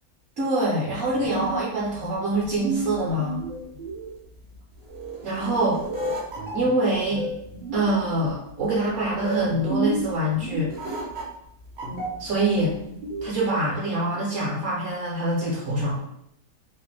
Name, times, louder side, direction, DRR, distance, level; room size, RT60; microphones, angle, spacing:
voice 1, 0.4-3.4 5.2-5.8 6.5-7.3 7.7-10.7 12.2-12.8 13.2-16.0, right 1 dB, 60° right, -6 dB, 0.8 m, -25 dB
sound 1, 0.9-13.4, right 2 dB, 80° right, 0.4 m, -32 dB
2.9 x 2.1 x 3.2 m, 0.79 s
omnidirectional pair, 1.8 m